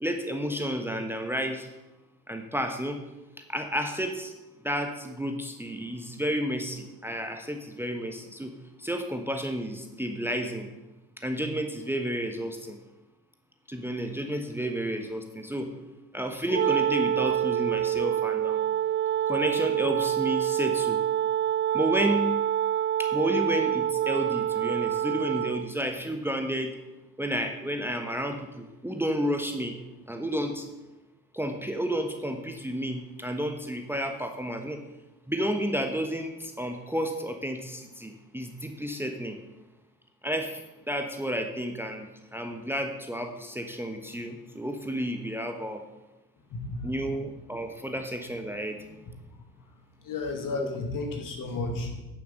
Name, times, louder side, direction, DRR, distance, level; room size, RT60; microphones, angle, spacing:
voice 1, 0.0-1.7 2.3-3.1 3.4-4.3 4.6-10.7 11.2-12.8 13.7-15.7 16.1-18.6 19.3-21.0 21.7-22.3 23.0-26.7 27.2-29.8 30.1-30.7 31.3-34.8 35.3-39.4 40.2-45.9 46.8-48.8 50.5-50.8, equal, 5° right, 6 dB, 1.1 m, -31 dB
Wind instrument woodwind instrument, 16.5-25.7, right 10 dB, 30° right, 0.4 m, -26 dB
voice 2, 46.5-47.3 49.1-49.2 50.0-52.0, left 2 dB, 50° left, 3 dB, 2.4 m, -33 dB
9.8 x 7.0 x 6.4 m, 1.0 s
hypercardioid pair, 55°, 41 cm